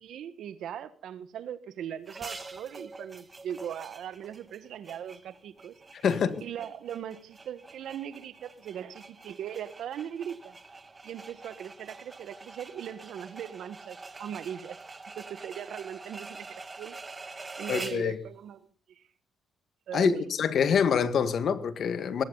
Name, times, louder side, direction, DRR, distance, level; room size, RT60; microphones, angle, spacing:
voice 1, 0.0-5.7 6.4-10.5 11.0-14.8 15.1-17.0 17.6-18.6 19.0-19.1 19.9-20.3, right 9 dB, 75° right, 1.5 m, -39 dB
sound 1, 2.1-18.1, right 3 dB, 25° right, 1.8 m, -46 dB
voice 2, 6.0-6.4 17.7-18.2 19.9-22.2, left 7 dB, 60° left, 1.8 m, -26 dB
19.5 x 18.0 x 4.1 m
cardioid pair, 90°, 0 cm